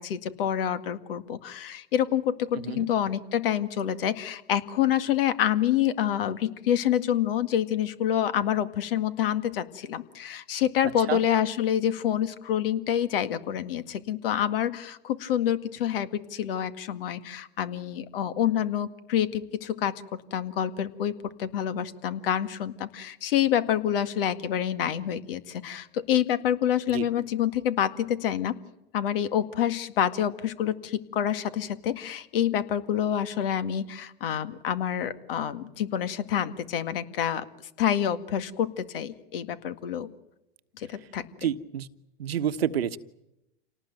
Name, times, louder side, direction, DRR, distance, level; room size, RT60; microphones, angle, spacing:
voice 1, 0.0-21.1 21.4-28.6 28.9-37.5 37.8-40.1 40.8-41.3, left 10 dB, 70° left, 11 dB, 2.0 m, -27 dB
voice 2, 2.5-2.9 11.1-11.2 26.9-27.0 41.4-41.9 42.2-43.0, right 9 dB, 90° right, 11 dB, 1.3 m, -29 dB
28.0 x 18.5 x 9.2 m, 0.89 s
hypercardioid pair, 120°, 29 cm